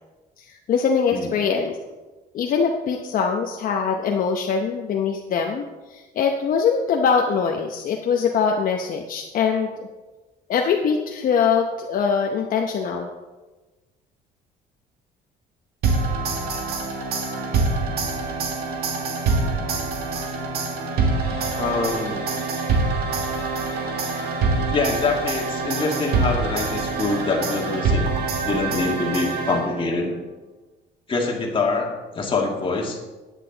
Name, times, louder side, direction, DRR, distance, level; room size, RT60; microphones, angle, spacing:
voice 1, 0.7-1.8 2.3-5.6 5.9-9.9 10.5-13.1, left 6 dB, 55° left, 2 dB, 0.8 m, -22 dB
sound 1, 15.8-30.0, right 3 dB, 70° right, 1.7 m, -25 dB
voice 2, 21.6-22.2 24.7-28.0 28.4-30.1 31.1-33.0, left 3 dB, 30° left, 0 dB, 2.0 m, -25 dB
9.8 x 9.1 x 4.0 m, 1.2 s
cardioid pair, 110°, 17 cm